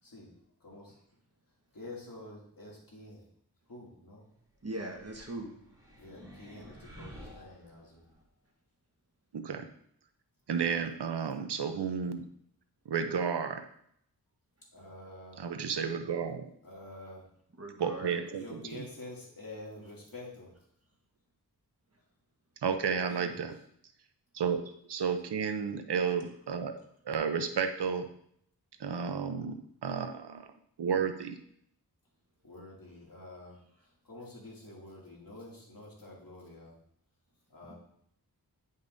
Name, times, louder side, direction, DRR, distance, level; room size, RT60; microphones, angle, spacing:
voice 1, 0.0-0.3 0.6-1.0 1.7-3.3 3.7-4.2 5.9-8.1 14.7-15.4 16.6-17.3 18.3-20.6 22.9-23.4 32.4-36.8 37.5-37.7, left 2 dB, 55° left, -4 dB, 2.5 m, -48 dB
voice 2, 4.6-5.5 17.6-18.2 37.7-37.8, right 1 dB, 40° right, 1 dB, 1.4 m, -40 dB
sound 1, 4.9-8.2, equal, 10° right, 2.6 m, -51 dB
voice 3, 9.3-9.7 10.5-12.2 12.9-13.6 15.4-16.5 17.8-18.4 22.6-23.5 24.3-24.6 24.9-26.8 27.1-28.1 28.8-29.6 29.8-30.5 30.8-31.3, right 6 dB, 90° right, 7 dB, 0.7 m, -32 dB
9.7 x 5.3 x 2.7 m, 0.68 s
wide cardioid pair, 65°, 40 cm